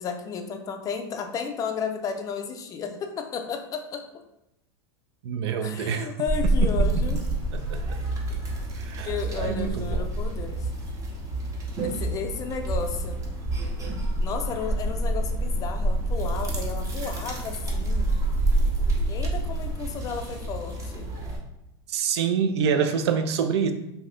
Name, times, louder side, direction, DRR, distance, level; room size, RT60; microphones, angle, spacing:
voice 1, 0.0-4.0 5.6-7.2 9.0-10.7 11.8-13.3 14.2-18.1 19.1-21.1, left 6 dB, 25° left, 5 dB, 0.4 m, -33 dB
voice 2, 5.2-6.1 6.6-6.7 7.5-7.8 8.8-10.1 21.9-23.7, right 7 dB, 75° right, 8 dB, 0.4 m, -26 dB
sound 1, 6.3-21.4, right 2 dB, 20° right, 0.7 m, -27 dB
2.7 x 2.4 x 3.3 m, 0.87 s
hypercardioid pair, 120°, 14 cm